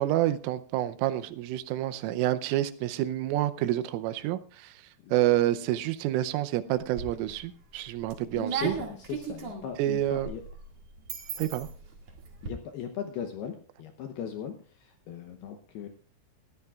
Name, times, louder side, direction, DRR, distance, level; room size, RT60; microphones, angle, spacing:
voice 1, 0.0-4.7 5.1-8.8 9.8-10.3 11.4-11.7, right 14 dB, 85° right, 12 dB, 3.3 m, -28 dB
sound 1, 6.7-7.4 7.9-12.5, right 5 dB, 45° right, 2.2 m, -38 dB
voice 2, 8.3-10.4 12.4-15.9, left 8 dB, 75° left, 5 dB, 2.4 m, -38 dB
20.0 x 13.5 x 2.4 m, 0.43 s
omnidirectional pair, 5.7 m